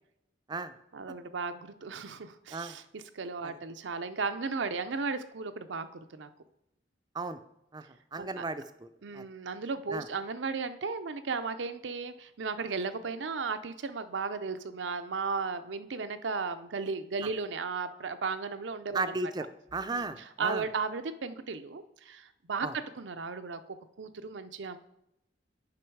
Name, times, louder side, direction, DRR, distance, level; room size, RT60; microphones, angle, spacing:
voice 1, 0.9-6.3 8.2-8.4 9.0-19.1 19.9-20.0 20.4-22.7 23.0-24.8, right 4 dB, 80° right, 10 dB, 0.6 m, -35 dB
voice 2, 8.1-8.9 9.1-9.2 9.9-10.0 18.9-19.4 19.7-20.6 22.6-22.7, right 3 dB, 25° right, 10 dB, 0.4 m, -35 dB
9.6 x 5.5 x 4.6 m, 0.85 s
head